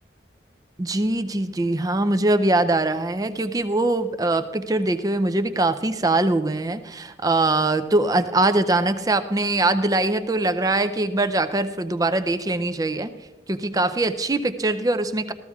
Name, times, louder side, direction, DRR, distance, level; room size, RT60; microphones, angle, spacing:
voice 1, 0.8-13.1 13.5-15.3, right 2 dB, 20° right, 11 dB, 0.5 m, -22 dB
15.0 x 13.5 x 3.6 m, 1.1 s
head